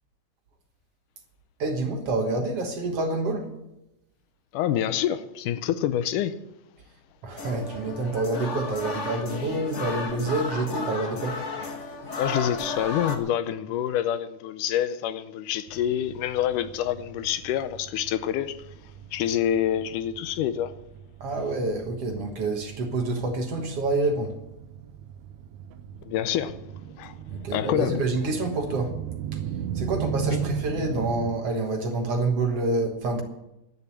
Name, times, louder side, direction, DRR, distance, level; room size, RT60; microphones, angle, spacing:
voice 1, 1.6-3.5 7.2-11.4 21.2-24.3 27.3-28.9 29.3-29.4 29.8-33.2, right 2 dB, 55° right, 2.2 m, -27 dB
voice 2, 4.5-6.3 12.2-18.6 19.1-20.7 26.1-26.7 27.0-27.1 27.5-28.0 30.3-30.4, left 10 dB, 80° left, 2.2 m, -27 dB
sound 1, 7.4-13.2, left 3 dB, 55° left, 0.7 m, -33 dB
sound 2, 15.7-31.3, right 9 dB, 75° right, 2.0 m, -37 dB
11.0 x 10.5 x 8.5 m
omnidirectional pair, 3.7 m